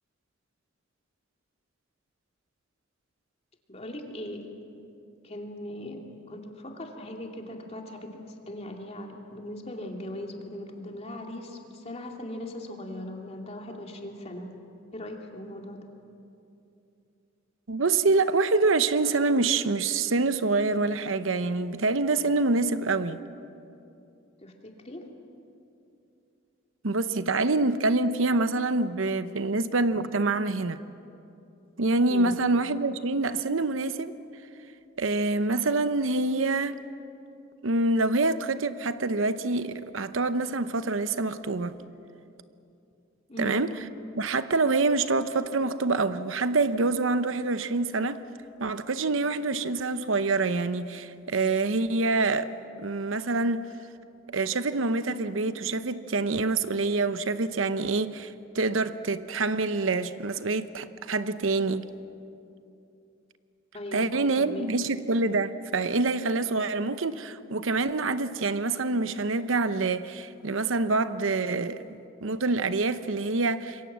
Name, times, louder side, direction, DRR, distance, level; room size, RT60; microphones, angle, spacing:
voice 1, 3.7-4.5 5.2-14.5 14.9-15.9 24.4-25.1 32.1-32.3 43.3-43.6 63.7-64.7, left 1 dB, 35° left, 2.7 m, -39 dB
voice 2, 17.7-23.2 26.8-30.8 31.8-34.1 35.0-36.8 37.6-41.8 43.4-43.7 44.1-48.2 48.6-52.5 52.8-53.7 54.3-61.9 63.9-71.9 72.2-73.9, right 3 dB, 75° right, 0.9 m, -26 dB
26.5 x 23.0 x 7.5 m
head